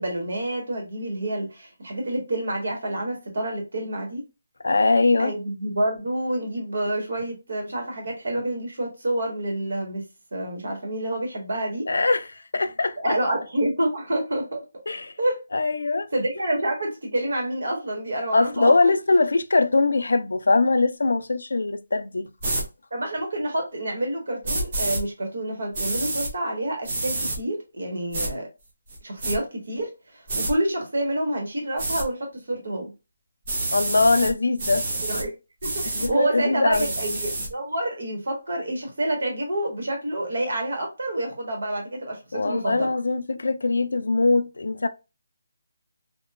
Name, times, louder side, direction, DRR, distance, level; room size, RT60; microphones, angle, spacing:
voice 1, 0.0-4.2 5.2-10.0 10.3-11.8 13.0-14.8 15.2-15.4 16.1-18.7 22.9-28.5 29.0-32.9 35.0-35.3 35.6-42.9, right 1 dB, 60° right, 1.2 m, -28 dB
voice 2, 4.6-5.3 11.9-12.3 12.5-13.2 14.9-15.1 15.5-16.1 18.3-22.3 33.7-34.8 36.0-36.9 42.3-44.9, left 3 dB, 80° left, 0.3 m, -22 dB
sound 1, 22.4-22.6 24.4-25.0 25.7-26.3 26.8-27.4 28.1-28.3 28.9-29.4 30.3-30.5 31.8-32.0 33.4-34.3 34.6-35.2 35.6-36.1 36.7-37.5, right 2 dB, 25° right, 0.5 m, -28 dB
2.9 x 2.2 x 2.3 m
hypercardioid pair, 180°, 0 cm